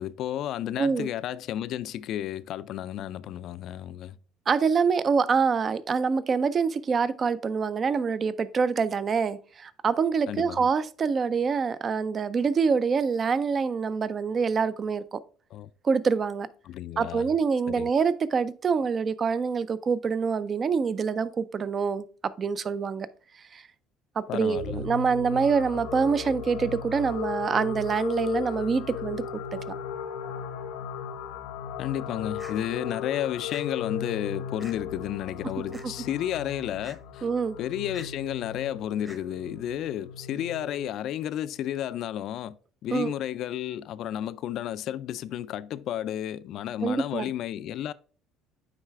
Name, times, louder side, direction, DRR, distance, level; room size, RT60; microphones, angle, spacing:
voice 1, 0.0-4.1 10.3-10.7 15.5-15.7 16.7-17.3 17.7-17.9 24.3-24.8 31.8-37.3 37.6-42.6 42.8-47.9, left 11 dB, 60° left, 0.3 m, -32 dB
voice 2, 0.8-1.1 4.5-15.2 15.8-16.5 17.0-22.1 22.4-23.1 23.5-23.6 24.2-29.2 29.7-29.8 37.2-37.6 42.9-43.1 46.8-47.3, right 5 dB, 35° right, 0.4 m, -25 dB
sound 1, 24.5-40.9, left 7 dB, 85° left, 0.8 m, -37 dB
sound 2, 32.4-32.5 33.5-33.6 34.6-34.8 35.7-35.9 36.8-37.0 37.9-38.1 39.0-39.2, right 1 dB, 10° right, 0.9 m, -46 dB
9.1 x 3.3 x 3.4 m
supercardioid pair, 100°, 0 cm